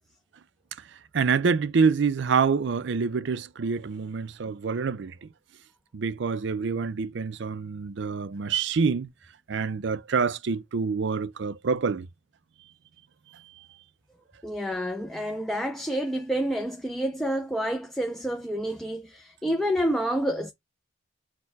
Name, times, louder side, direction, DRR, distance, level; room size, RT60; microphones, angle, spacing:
voice 1, 1.1-5.3 5.9-9.1 9.5-12.1, right 5 dB, 65° right, 0.4 m, -26 dB
voice 2, 14.4-20.5, equal, ahead, 0.4 m, -28 dB
4.4 x 2.1 x 4.6 m
head